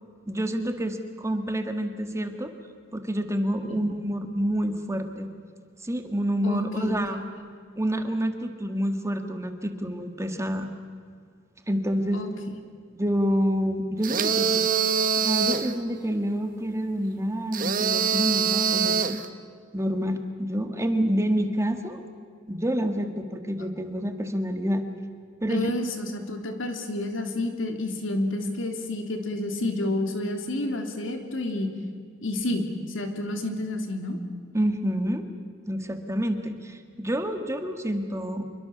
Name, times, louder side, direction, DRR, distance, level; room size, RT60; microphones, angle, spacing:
voice 1, 0.3-2.5 2.9-5.3 5.8-7.2 7.8-10.7 11.7-12.2 13.0-14.7 15.2-19.2 19.7-22.0 22.5-24.8 25.4-25.7 34.5-35.3 35.7-38.4, equal, 15° right, 6 dB, 1.7 m, -28 dB
voice 2, 6.4-7.0 12.1-12.3 25.5-31.7 32.2-34.2, left 1 dB, 70° left, 5 dB, 3.1 m, -29 dB
sound 1, 14.0-15.7 17.5-19.3, right 6 dB, 45° right, 1.3 m, -24 dB
26.5 x 23.0 x 7.1 m, 2.2 s
head